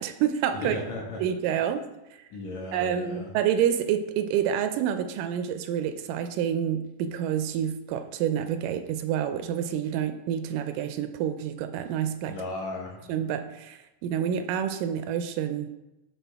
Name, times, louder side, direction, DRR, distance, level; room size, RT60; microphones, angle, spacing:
voice 1, 0.0-0.8 1.2-1.8 2.7-12.4 13.1-15.7, right 9 dB, 90° right, 9 dB, 2.2 m, -28 dB
voice 2, 0.5-1.2 2.3-3.3 12.2-13.1, left 2 dB, 65° left, -1 dB, 2.5 m, -35 dB
12.0 x 4.1 x 3.5 m, 0.97 s
omnidirectional pair, 3.7 m